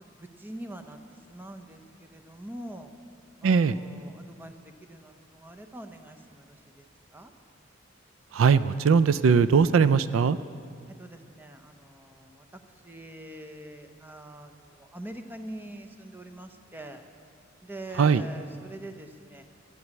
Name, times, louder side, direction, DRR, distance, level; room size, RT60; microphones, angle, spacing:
voice 1, 0.0-2.9 3.4-6.9 7.1-7.3 10.9-17.0 17.6-19.4, right 1 dB, 10° right, 6 dB, 0.7 m, -44 dB
voice 2, 3.4-3.7 8.3-10.4 18.0-18.2, right 6 dB, 80° right, 15 dB, 0.4 m, -20 dB
12.5 x 8.5 x 8.2 m, 2.2 s
head